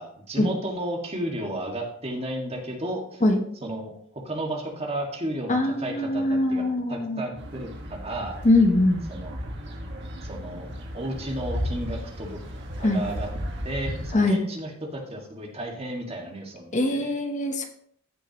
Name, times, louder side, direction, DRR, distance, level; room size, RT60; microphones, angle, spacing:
voice 1, 0.0-3.2 3.6-3.9 4.2-6.6 6.9-8.4 9.1-9.3 10.2-10.7 10.9-12.4 12.8-13.3 13.6-17.1, right 1 dB, 30° right, 0 dB, 1.9 m, -33 dB
voice 2, 5.5-7.2 8.4-9.0 12.8-13.0 14.1-14.4 16.7-17.7, left 2 dB, 40° left, 5 dB, 1.0 m, -22 dB
sound 1, 7.4-14.1, equal, 60° right, 1.7 m, -35 dB
14.5 x 6.4 x 3.0 m, 0.64 s
head